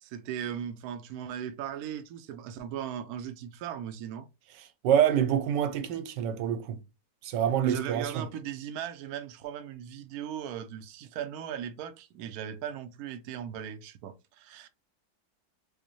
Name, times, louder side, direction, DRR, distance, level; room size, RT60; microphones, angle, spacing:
voice 1, 0.0-4.3 7.6-14.7, right 9 dB, 70° right, 0.9 m, -38 dB
voice 2, 4.6-6.8 7.2-8.3, right 9 dB, 90° right, 1.3 m, -27 dB
5.1 x 2.1 x 3.0 m
omnidirectional pair, 1.9 m